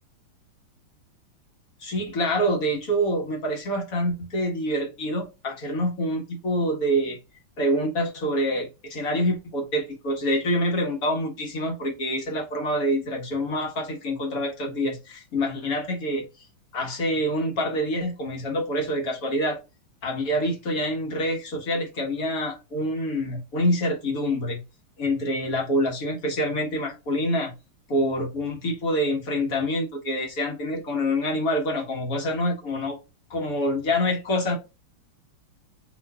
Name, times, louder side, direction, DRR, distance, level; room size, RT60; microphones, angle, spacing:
voice 1, 1.8-7.2 7.6-16.5 16.7-19.6 20.0-24.6 25.0-27.5 27.9-33.0 33.3-34.6, equal, 45° left, 1 dB, 1.4 m, -26 dB
5.1 x 3.2 x 2.3 m, 0.27 s
omnidirectional pair, 2.4 m